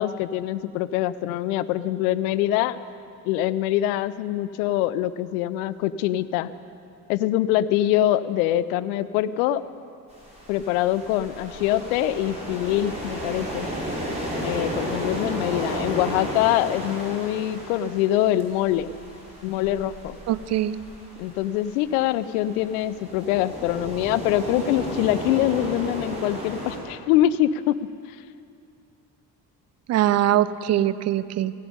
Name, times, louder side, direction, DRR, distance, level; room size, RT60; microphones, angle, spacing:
voice 1, 0.0-2.8 3.3-6.5 7.1-9.6 10.5-13.7 14.4-18.9 19.4-20.2 21.2-27.8, left 13 dB, 65° left, 16 dB, 0.6 m, -24 dB
sound 1, 10.1-26.8, equal, 15° right, 4.4 m, -34 dB
voice 2, 20.3-20.8 29.9-31.5, right 12 dB, 35° right, 15 dB, 0.4 m, -22 dB
16.5 x 10.5 x 5.4 m, 2.5 s
figure-of-eight pair, 45°, 48 cm